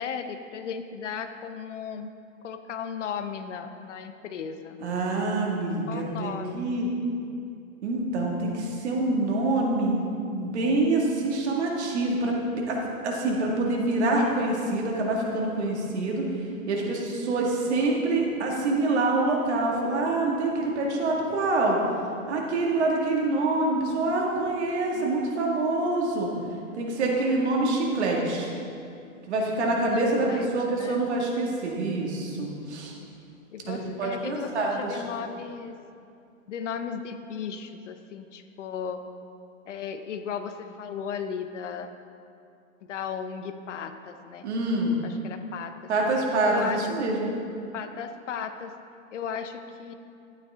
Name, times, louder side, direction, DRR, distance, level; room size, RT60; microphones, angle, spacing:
voice 1, 0.0-2.1 2.4-4.8 5.9-6.7 24.9-25.1 30.2-31.1 33.5-35.8 36.5-39.0 39.7-41.9 42.8-44.5 45.0-45.7 46.4-46.9 47.7-48.7 49.1-49.9, left 7 dB, 60° left, 8 dB, 0.8 m, -35 dB
voice 2, 4.8-6.9 7.8-10.0 10.3-16.3 16.7-21.8 22.3-26.3 26.7-28.5 29.3-32.9 33.7-35.0 44.4-45.0 45.9-47.3, right 2 dB, 55° right, -1 dB, 2.1 m, -26 dB
11.5 x 9.4 x 3.7 m, 2.5 s
hypercardioid pair, 160°, 41 cm